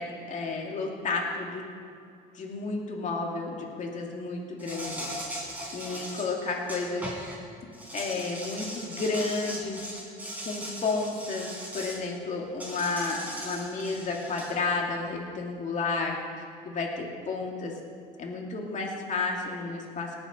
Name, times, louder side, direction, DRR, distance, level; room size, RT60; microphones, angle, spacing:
voice 1, 0.0-1.6 2.3-7.1 7.6-9.9 10.4-11.5 11.7-16.2 16.6-17.7 18.2-20.1, left 3 dB, 45° left, 0 dB, 2.5 m, -32 dB
Insect, 4.6-7.4 7.7-12.0 12.6-14.5, right 1 dB, 10° right, 3.9 m, -39 dB
18.5 x 7.1 x 5.5 m, 2.4 s
cardioid pair, 110°, 17 cm